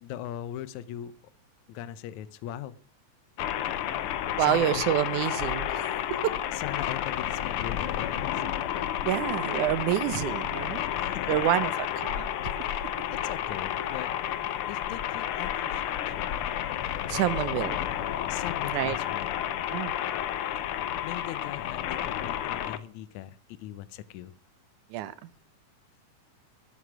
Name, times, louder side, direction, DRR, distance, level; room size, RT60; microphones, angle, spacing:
voice 1, 0.0-1.1 1.7-2.7 4.4-4.9 6.6-8.4 10.8-11.2 13.1-14.1 14.7-16.4 18.3-19.3 21.0-24.3, left 12 dB, 75° left, 2.0 m, -40 dB
sound 1, 3.4-22.8, left 11 dB, 90° left, 1.2 m, -31 dB
voice 2, 4.4-5.8 6.2-6.3 9.0-10.8 11.3-11.7 12.0-12.3 17.1-17.8 18.7-19.0 19.7-19.9 24.9-25.1, right 12 dB, 75° right, 2.2 m, -27 dB
12.5 x 11.0 x 6.2 m
omnidirectional pair, 3.6 m